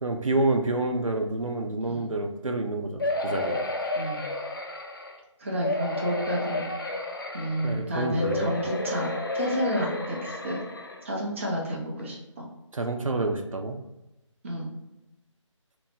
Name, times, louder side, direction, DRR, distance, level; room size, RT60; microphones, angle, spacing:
voice 1, 0.0-3.6 7.6-8.6 12.7-13.8, right 2 dB, 90° right, 4 dB, 0.5 m, -28 dB
sound 1, 3.0-5.2 5.6-7.8 8.2-11.0 11.6-11.7 12.0-12.1, left 2 dB, 40° left, 0.4 m, -31 dB
voice 2, 3.9-4.3 5.4-6.6 7.3-9.1 9.3-10.6 11.0-12.4 14.4-14.7, equal, 25° right, -4 dB, 0.5 m, -30 dB
3.0 x 2.0 x 3.3 m, 0.96 s
figure-of-eight pair, 155°, 16 cm